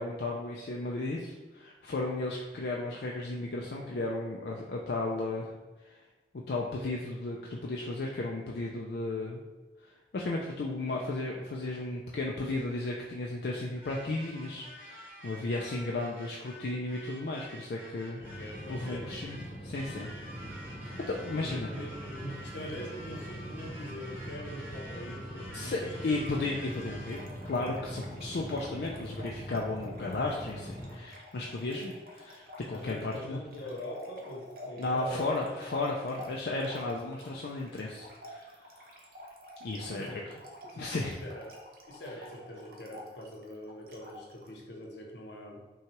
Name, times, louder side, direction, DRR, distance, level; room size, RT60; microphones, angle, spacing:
voice 1, 0.0-5.5 5.8-6.0 6.3-9.4 9.8-20.1 20.8-21.7 25.5-33.4 34.8-38.5 39.6-40.4 40.7-41.1, left 2 dB, 60° left, -1 dB, 0.4 m, -34 dB
sound 1, 13.8-27.5, equal, 10° right, 1.1 m, -49 dB
voice 2, 18.2-19.2 21.4-25.9 32.7-35.5 39.8-40.9 41.2-41.6 41.9-45.8, equal, 80° left, 0 dB, 0.9 m, -43 dB
sound 2, 18.2-31.0, equal, 35° left, 0.8 m, -43 dB
Trickle dribble / Fill (with liquid), 26.2-44.6, left 1 dB, 55° right, 0.7 m, -50 dB
5.6 x 2.3 x 3.0 m, 1.2 s
head